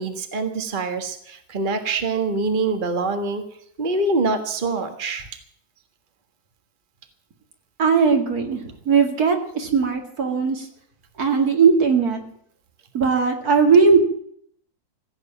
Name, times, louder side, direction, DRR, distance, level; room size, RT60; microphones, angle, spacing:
voice 1, 0.0-3.4 3.8-5.3, right 3 dB, 35° right, 6 dB, 1.6 m, -24 dB
voice 2, 7.8-10.7 11.2-12.2 12.9-14.0, right 5 dB, 70° right, 4 dB, 2.7 m, -18 dB
16.0 x 8.2 x 9.1 m, 0.64 s
omnidirectional pair, 1.7 m